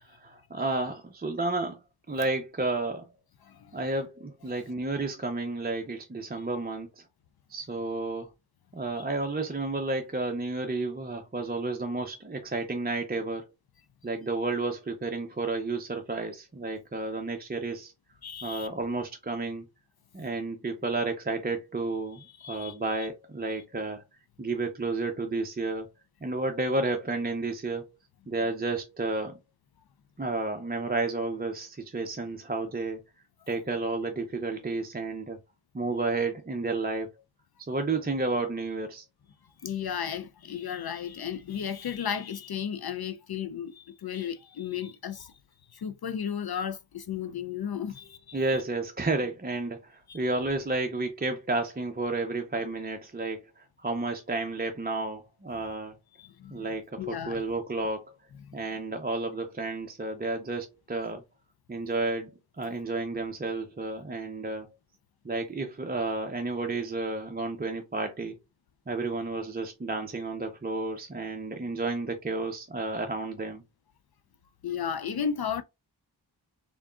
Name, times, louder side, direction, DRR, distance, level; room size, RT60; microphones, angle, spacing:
voice 1, 0.0-1.8 2.1-3.1 3.7-7.0 7.5-8.3 8.7-13.5 14.0-17.9 18.4-19.7 20.1-22.2 22.5-24.0 24.4-25.9 26.2-27.9 28.3-29.4 30.2-33.0 33.5-35.4 35.7-37.1 37.7-39.0 48.3-56.0 56.5-58.2 58.5-61.2 61.7-62.3 62.6-64.7 65.2-68.4 68.9-73.6, right 3 dB, 20° right, 0.6 m, -31 dB
voice 2, 3.4-3.7 18.2-18.7 22.4-23.1 39.6-45.3 45.7-48.4 50.1-50.2 56.2-56.5 57.0-57.4 74.6-75.6, left 8 dB, 60° left, 0.5 m, -34 dB
3.8 x 3.5 x 2.3 m
wide cardioid pair, 55°, 43 cm